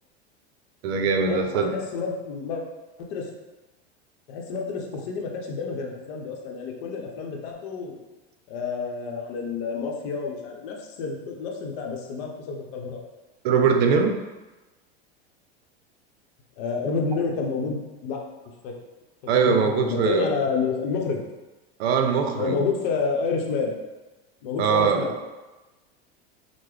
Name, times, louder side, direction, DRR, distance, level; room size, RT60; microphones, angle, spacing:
voice 1, 0.8-1.8 13.4-14.2 19.3-20.3 21.8-22.6 24.6-25.1, right 6 dB, 75° right, 5 dB, 0.5 m, -21 dB
voice 2, 1.7-2.6 3.1-3.3 4.3-8.0 8.5-13.0 16.6-18.2 18.6-18.7 19.3-21.2 22.3-23.7 24.4-25.1, left 5 dB, 60° left, 0 dB, 0.8 m, -29 dB
3.6 x 2.1 x 3.1 m, 1.1 s
hypercardioid pair, 100°, 32 cm